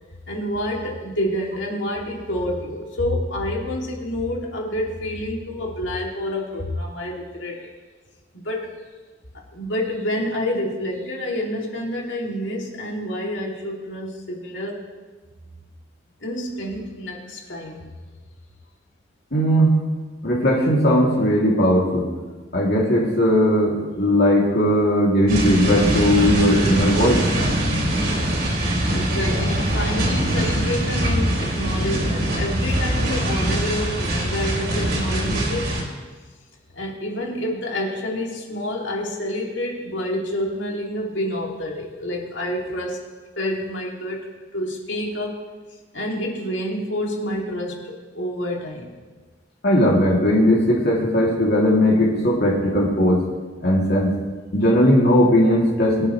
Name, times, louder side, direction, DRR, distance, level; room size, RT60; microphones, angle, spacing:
voice 1, 0.3-7.7 8.3-8.7 9.5-14.8 16.2-17.9 28.9-35.7 36.7-43.0 43.4-44.3 44.5-45.5 45.9-48.9, left 1 dB, 80° left, -1 dB, 2.6 m, -28 dB
voice 2, 19.3-19.8 20.2-22.1 22.5-27.2 49.6-53.2 53.6-54.1 54.5-56.1, equal, 60° left, -4 dB, 2.7 m, -18 dB
sound 1, 25.3-35.8, right 1 dB, 60° right, 3.3 m, -23 dB
24.0 x 8.4 x 3.2 m, 1.3 s
head